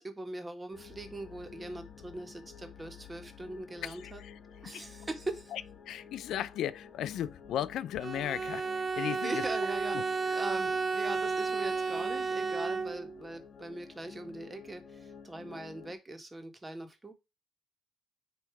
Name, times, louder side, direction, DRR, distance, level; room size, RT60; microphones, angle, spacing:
voice 1, 0.0-4.2 4.6-5.5 9.2-17.1, right 2 dB, 20° right, 1.6 m, -41 dB
sound 1, 0.7-15.9, left 6 dB, 60° left, 1.3 m, -52 dB
voice 2, 3.8-4.4 4.7-4.9 5.5-9.4 9.9-10.0, left 11 dB, 80° left, 0.4 m, -36 dB
Bowed string instrument, 8.0-13.3, right 4 dB, 40° right, 0.8 m, -32 dB
9.2 x 3.1 x 4.7 m
cardioid pair, 90°, 0 cm